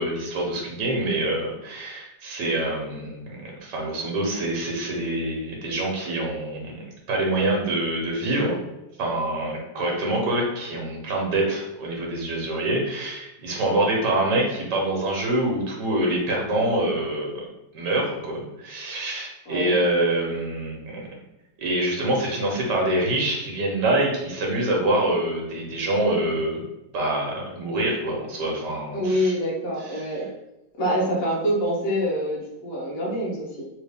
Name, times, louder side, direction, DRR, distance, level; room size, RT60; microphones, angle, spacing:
voice 1, 0.0-8.6 9.0-17.5 17.7-21.1 21.6-26.6 26.9-29.3 29.9-30.0, right 1 dB, 85° right, -1 dB, 1.5 m, -25 dB
voice 2, 28.9-30.3 30.8-33.6, equal, 60° left, -3 dB, 1.3 m, -26 dB
3.2 x 3.1 x 3.4 m, 0.92 s
omnidirectional pair, 1.8 m